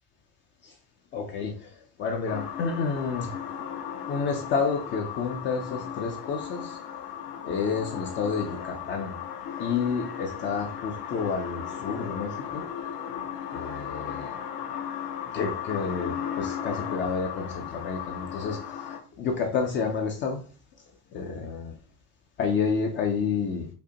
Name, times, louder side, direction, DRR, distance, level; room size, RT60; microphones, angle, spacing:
voice 1, 1.1-3.4 4.1-6.8 7.4-9.2 9.6-12.6 13.5-14.3 15.3-18.8 19.2-20.4 21.1-21.7 22.4-23.7, left 5 dB, 30° left, 3 dB, 0.4 m, -30 dB
sound 1, 2.3-19.0, left 9 dB, 75° left, 1.0 m, -36 dB
5.0 x 2.1 x 2.8 m, 0.39 s
supercardioid pair, 130°, 46 cm